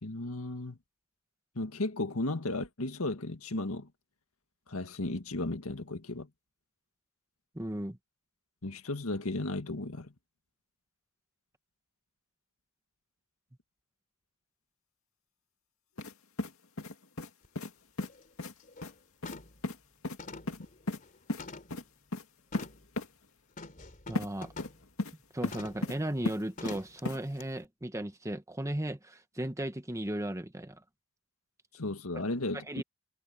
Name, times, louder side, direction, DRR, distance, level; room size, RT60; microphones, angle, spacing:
voice 1, 0.0-0.8 1.6-3.9 4.7-6.3 8.6-10.1 31.7-32.8, left 2 dB, 90° left, 1.8 m, -35 dB
voice 2, 7.5-8.0 24.1-24.5 25.3-30.8 32.7-32.8, right 1 dB, 15° right, 1.3 m, -36 dB
sound 1, 16.0-16.1 16.4-17.3 17.6-17.7 18.0-18.1 18.4-18.5 18.8-18.9 19.2-19.4 19.6-19.8 20.0-20.2 20.5-21.0 21.3-21.4 21.7-21.8 22.1-22.2 22.5-22.7 23.0-23.1 24.2-24.3 24.6-25.1 25.4-26.0 26.3-26.8 27.1-27.2, left 2 dB, 75° left, 2.3 m, -35 dB
sound 2, 17.4-17.5 18.0-18.2 18.6-18.9 19.3-19.7 20.2-21.9 22.5-22.9 23.6-24.8 25.5-25.9 26.6-27.0 27.4-27.5, left 3 dB, 40° left, 3.0 m, -46 dB
head